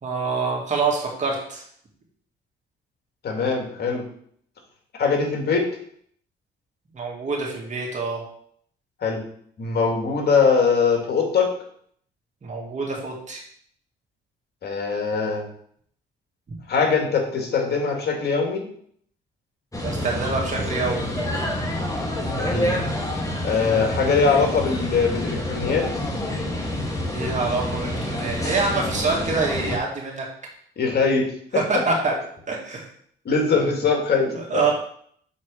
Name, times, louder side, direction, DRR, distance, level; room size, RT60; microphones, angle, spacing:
voice 1, 0.0-1.6 6.9-8.2 12.4-13.4 19.8-21.0 27.1-30.3 31.5-32.1 32.5-32.9 34.3-34.7, right 4 dB, 35° right, -1 dB, 2.3 m, -26 dB
voice 2, 3.2-4.0 5.0-5.7 9.0-9.2 9.6-11.5 14.6-15.4 16.7-18.6 22.4-22.7 23.4-25.8 30.8-31.3 33.3-34.7, left 5 dB, 55° left, 1 dB, 2.1 m, -22 dB
sound 1, 19.7-29.8, left 1 dB, 15° left, 1.6 m, -27 dB
6.6 x 4.0 x 4.9 m, 0.63 s
cardioid pair, 90°, 20 cm